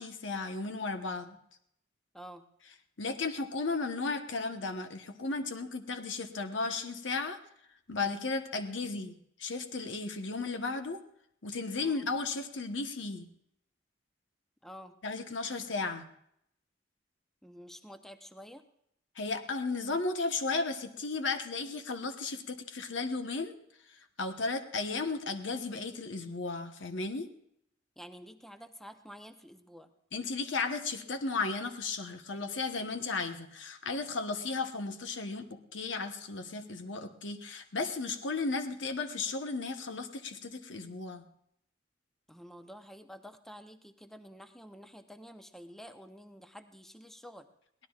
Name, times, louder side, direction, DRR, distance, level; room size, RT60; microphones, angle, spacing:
voice 1, 0.0-1.4 3.0-7.4 7.9-11.0 11.4-13.3 15.0-16.1 19.2-23.5 24.2-27.3 30.1-41.2, left 3 dB, 85° left, 7 dB, 1.1 m, -35 dB
voice 2, 2.1-2.5 11.8-12.0 14.6-15.0 17.4-18.6 28.0-29.9 42.3-47.5, equal, ahead, 7 dB, 0.7 m, -49 dB
23.0 x 17.5 x 2.4 m, 0.74 s
head